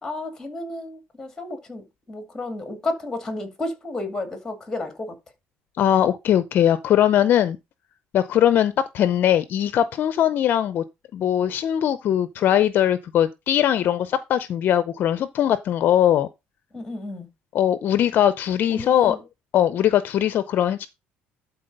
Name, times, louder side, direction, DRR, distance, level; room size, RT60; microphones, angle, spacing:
voice 1, 0.0-5.2 16.7-17.3 18.7-19.2, left 2 dB, 10° left, 2.2 m, -32 dB
voice 2, 5.8-7.6 8.1-10.8 11.1-16.3 17.5-19.2 19.5-20.9, left 10 dB, 45° left, 0.6 m, -20 dB
12.0 x 4.1 x 5.3 m
cardioid pair, 155°, 5 cm